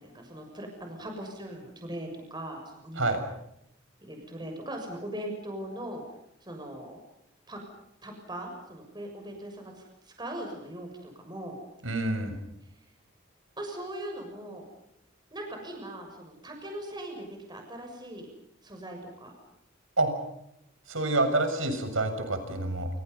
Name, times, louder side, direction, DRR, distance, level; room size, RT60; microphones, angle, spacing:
voice 1, 0.0-3.3 4.0-6.0 6.4-7.0 7.5-7.6 8.0-11.6 13.6-14.6 15.3-18.3 18.6-19.3, right 1 dB, 20° right, 3 dB, 6.8 m, -40 dB
voice 2, 11.8-12.4 20.0-20.1 20.9-22.9, right 2 dB, 85° right, 7 dB, 6.9 m, -27 dB
29.5 x 29.0 x 5.6 m, 0.80 s
head